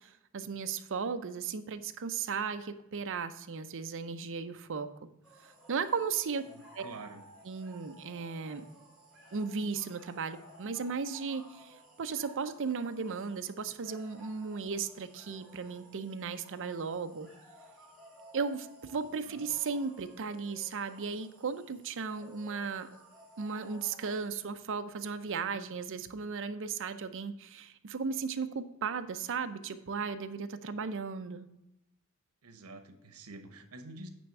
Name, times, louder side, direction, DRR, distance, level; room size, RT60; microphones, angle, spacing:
voice 1, 0.0-4.9 5.7-6.5 6.8-6.9 7.5-8.7 9.3-17.3 18.3-22.9 23.4-31.5, right 5 dB, 60° right, 10 dB, 0.6 m, -36 dB
sound 1, 5.2-24.2, right 1 dB, 5° right, 3.0 m, -56 dB
voice 2, 6.5-7.2 19.3-19.5 32.4-34.1, right 2 dB, 90° right, 8 dB, 0.9 m, -48 dB
9.1 x 3.5 x 6.6 m, 0.88 s
head